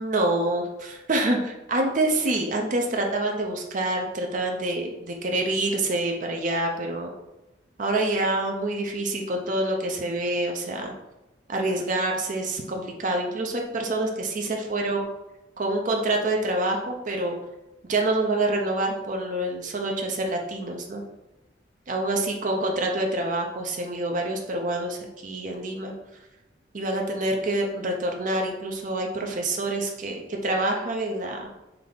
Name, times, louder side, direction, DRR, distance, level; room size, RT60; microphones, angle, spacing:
voice 1, 0.0-7.1 7.8-10.9 11.5-15.1 15.6-17.4 17.9-21.0 21.9-25.9 26.7-31.4, right 2 dB, 45° right, 2 dB, 0.5 m, -26 dB
3.4 x 3.2 x 3.9 m, 1.0 s
head